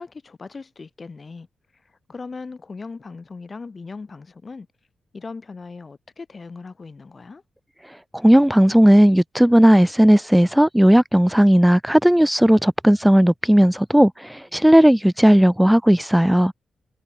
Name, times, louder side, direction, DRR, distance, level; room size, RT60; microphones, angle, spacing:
voice 1, 0.0-1.5 1.8-4.7 5.1-7.4, left 4 dB, 40° left, 5.6 m, -38 dB
voice 2, 8.2-16.5, equal, 5° right, 1.0 m, -15 dB
cardioid pair, 75°, 0 cm